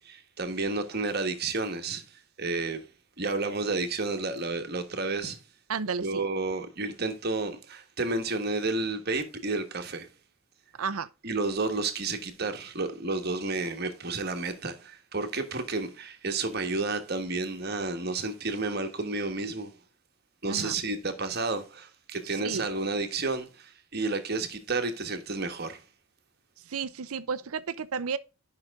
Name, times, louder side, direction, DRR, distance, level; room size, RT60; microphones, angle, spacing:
voice 1, 0.0-2.8 3.2-5.4 6.0-10.1 11.2-19.7 20.4-25.8, right 3 dB, 45° right, 1.4 m, -31 dB
voice 2, 5.7-6.2 10.8-11.1 20.5-20.8 22.2-22.7 26.7-28.2, right 5 dB, 85° right, 0.6 m, -32 dB
10.5 x 5.8 x 3.6 m
head